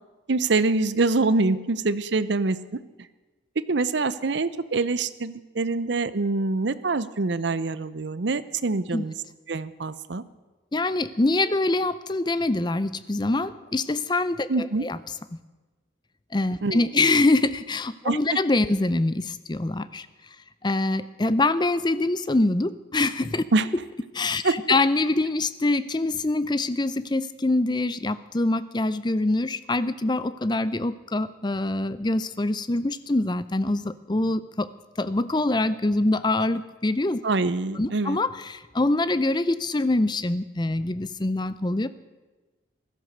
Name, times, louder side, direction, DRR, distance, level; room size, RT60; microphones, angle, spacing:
voice 1, 0.3-2.8 3.7-9.1 9.5-10.2 14.5-14.9 16.6-16.8 18.0-18.2 23.5-23.7 24.4-24.6 37.2-38.2, right 3 dB, 65° right, 15 dB, 0.7 m, -25 dB
voice 2, 10.7-15.0 16.3-20.1 20.6-23.4 24.1-34.7 35.0-37.2 37.7-41.9, left 2 dB, 20° left, 14 dB, 0.5 m, -24 dB
15.5 x 13.0 x 6.6 m, 1.2 s
head